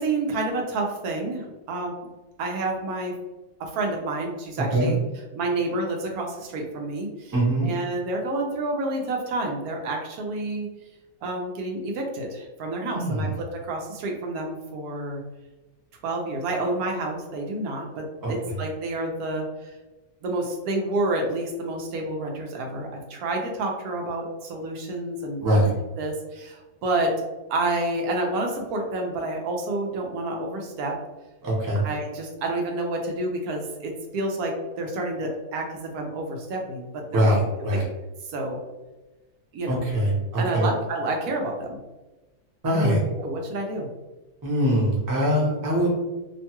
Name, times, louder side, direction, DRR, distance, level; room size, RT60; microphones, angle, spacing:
voice 1, 0.0-1.9 2.4-3.1 3.6-5.0 5.3-7.3 7.6-10.7 11.2-15.2 16.0-19.7 20.2-25.6 26.0-27.1 27.5-31.0 31.8-37.7 38.3-38.6 39.5-39.8 40.4-41.8 42.6-43.9, right 2 dB, 85° right, 1 dB, 1.1 m, -29 dB
voice 2, 7.3-7.7 12.9-13.3 18.2-18.3 25.4-25.8 31.4-31.8 37.1-37.8 39.7-40.7 42.6-43.0 44.4-45.9, right 1 dB, 20° right, -5 dB, 0.6 m, -22 dB
3.0 x 2.2 x 2.8 m, 1.1 s
omnidirectional pair, 1.5 m